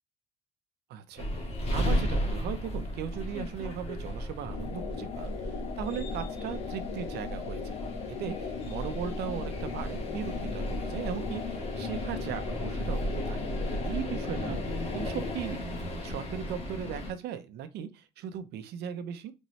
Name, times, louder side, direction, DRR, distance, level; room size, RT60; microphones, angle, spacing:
voice 1, 0.9-7.7 8.1-13.5 13.8-19.3, right 9 dB, 75° right, 0.7 m, -38 dB
sound 1, 1.2-17.1, equal, 40° left, 1.6 m, -34 dB
sound 2, 4.5-15.3, left 7 dB, 85° left, 0.8 m, -39 dB
4.2 x 3.6 x 3.1 m
cardioid pair, 110°, 17 cm